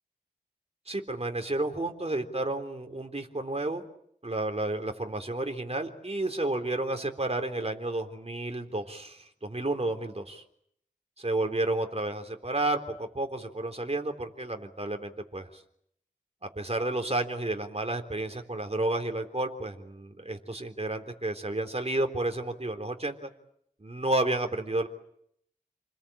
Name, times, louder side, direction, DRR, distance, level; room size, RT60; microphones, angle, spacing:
voice 1, 0.9-3.8 4.2-10.4 11.2-15.5 16.6-23.3 23.8-24.9, right 2 dB, 45° right, 4 dB, 3.6 m, -31 dB
29.0 x 21.0 x 8.7 m, 0.71 s
wide cardioid pair, 55°, 15 cm